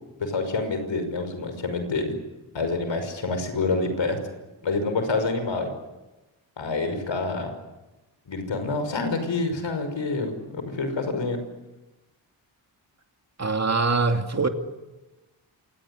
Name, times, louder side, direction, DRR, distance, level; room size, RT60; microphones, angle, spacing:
voice 1, 0.2-2.2 2.5-4.2 4.6-5.7 6.6-7.5 8.3-11.4, left 3 dB, 70° left, 5.9 m, -27 dB
voice 2, 13.4-14.5, right 4 dB, 35° right, 2.8 m, -23 dB
27.5 x 18.0 x 10.0 m
cardioid pair, 60°, 46 cm